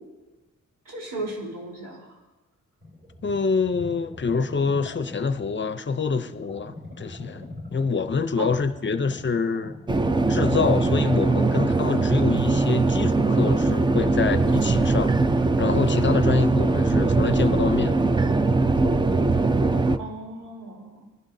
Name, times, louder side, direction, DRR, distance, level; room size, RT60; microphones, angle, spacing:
voice 1, 0.9-2.2 8.4-8.5 20.0-21.1, right 2 dB, 85° right, 3.7 m, -35 dB
sound 1, 2.8-9.9, left 1 dB, 40° right, 3.1 m, -42 dB
voice 2, 3.2-9.8 10.3-15.1 15.6-18.0, left 5 dB, 35° left, 0.6 m, -26 dB
sound 2, 9.9-20.0, right 3 dB, 15° right, 0.3 m, -21 dB
26.5 x 11.5 x 2.7 m
wide cardioid pair, 165°, 32 cm